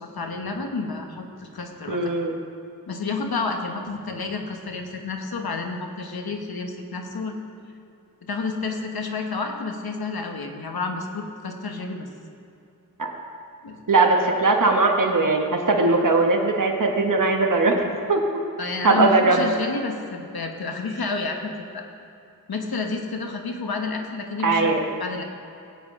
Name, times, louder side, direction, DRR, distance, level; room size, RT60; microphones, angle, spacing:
voice 1, 0.0-2.1 2.9-7.4 8.2-12.1 13.6-13.8 18.6-21.9 22.5-24.7 25.0-25.2, left 4 dB, 85° left, 3 dB, 1.2 m, -30 dB
voice 2, 1.9-2.3 13.0-13.1 13.9-17.8 18.1-18.2 18.8-19.4 24.4-24.8, right 3 dB, 60° right, 2 dB, 1.2 m, -20 dB
17.0 x 8.8 x 3.7 m, 2.6 s
wide cardioid pair, 55°, 36 cm